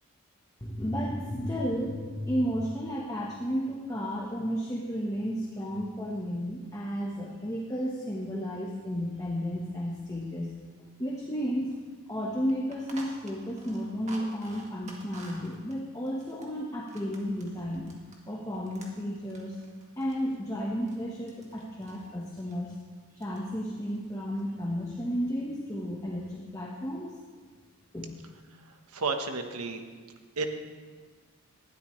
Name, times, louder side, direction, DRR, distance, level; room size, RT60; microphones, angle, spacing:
voice 1, 0.6-10.5 11.0-11.8 12.1-17.9 18.3-19.6 20.0-22.7 23.2-27.2 27.9-28.1, equal, 15° left, -3 dB, 1.3 m, -33 dB
sound 1, 11.7-11.8 12.1-12.2 12.5-18.2 18.5-21.0 21.3-22.1 22.3-22.6 23.0-23.4 23.7-24.4, right 2 dB, 30° right, 1.9 m, -50 dB
voice 2, 28.9-29.8 30.4-30.5, right 4 dB, 90° right, 6 dB, 1.3 m, -31 dB
19.5 x 12.5 x 3.3 m, 1.5 s
head